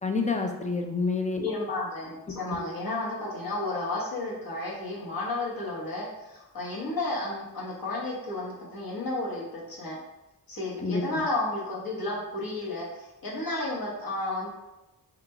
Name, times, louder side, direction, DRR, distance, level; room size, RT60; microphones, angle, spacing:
voice 1, 0.0-1.5 2.6-2.7 10.8-11.2, left 4 dB, 20° left, 3 dB, 0.4 m, -28 dB
voice 2, 1.4-10.0 10.5-14.5, left 2 dB, 60° left, -5 dB, 1.3 m, -32 dB
3.8 x 2.3 x 3.2 m, 0.98 s
cardioid pair, 75°, 39 cm